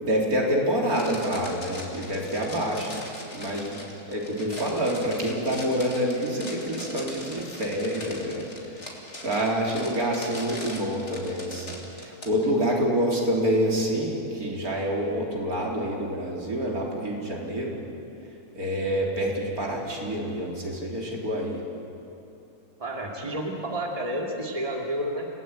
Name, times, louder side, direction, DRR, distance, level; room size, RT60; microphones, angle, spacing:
voice 1, 0.0-3.0 3.3-3.8 4.1-8.5 9.2-17.8 18.6-21.6, equal, 70° right, -1 dB, 4.1 m, -27 dB
sound 1, 0.9-12.3, left 1 dB, 45° left, 3.2 m, -40 dB
voice 2, 4.3-4.6 22.8-25.3, right 1 dB, 20° right, 0 dB, 2.6 m, -31 dB
28.5 x 18.0 x 9.1 m, 2.7 s
omnidirectional pair, 1.6 m